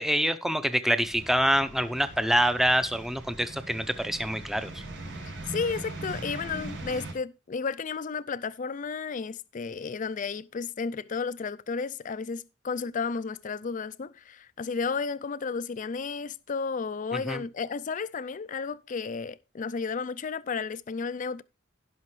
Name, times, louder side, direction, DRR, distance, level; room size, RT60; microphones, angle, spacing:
voice 1, 0.0-4.8 17.1-17.4, equal, ahead, 0.7 m, -26 dB
sound 1, 1.0-7.1, right 2 dB, 90° right, 5.4 m, -41 dB
voice 2, 5.2-21.4, left 5 dB, 40° left, 0.4 m, -33 dB
16.5 x 5.7 x 3.2 m
head